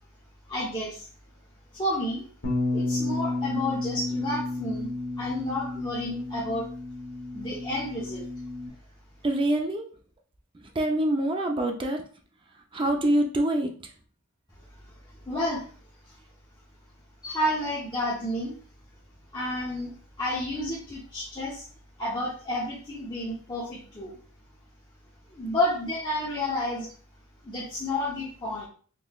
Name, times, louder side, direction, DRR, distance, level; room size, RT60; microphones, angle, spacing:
voice 1, 0.5-1.1 1.7-2.3 2.7-4.9 5.2-6.7 7.3-8.3 15.3-15.6 17.2-18.6 19.3-21.6 22.0-24.1 25.3-26.9 27.4-28.7, left 1 dB, 20° left, -8 dB, 0.8 m, -30 dB
Bass guitar, 2.4-8.7, left 2 dB, 65° left, 1.0 m, -31 dB
voice 2, 9.2-9.9 10.8-12.0 12.7-13.7, right 1 dB, 20° right, 3 dB, 0.4 m, -25 dB
3.7 x 3.0 x 2.3 m, 0.43 s
head